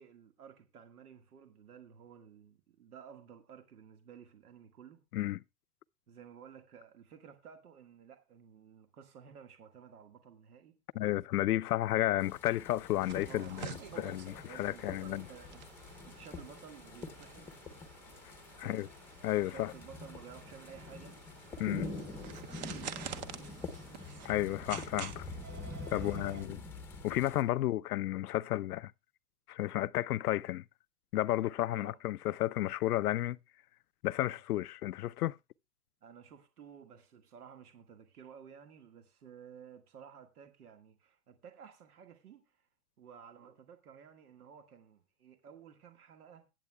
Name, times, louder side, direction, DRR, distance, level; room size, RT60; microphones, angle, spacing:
voice 1, 0.0-5.1 6.1-10.8 13.3-13.9 14.4-15.6 16.0-17.6 18.6-18.9 19.4-21.2 22.5-23.6 25.9-26.6 27.4-27.6 31.7-32.0 34.2-34.4 36.0-42.7 43.0-46.5, right 7 dB, 90° right, 1.8 m, -54 dB
voice 2, 11.0-15.2 18.6-18.9 19.2-19.7 21.6-21.9 24.2-25.3 25.9-26.6 27.0-28.9 29.5-30.6 31.1-33.4 34.0-35.4, left 15 dB, 90° left, 0.6 m, -32 dB
sound 1, 12.2-27.4, left 3 dB, 5° left, 0.7 m, -46 dB
sound 2, 13.0-26.4, right 8 dB, 30° right, 0.7 m, -49 dB
22.5 x 8.2 x 2.3 m
hypercardioid pair, 160°, 44 cm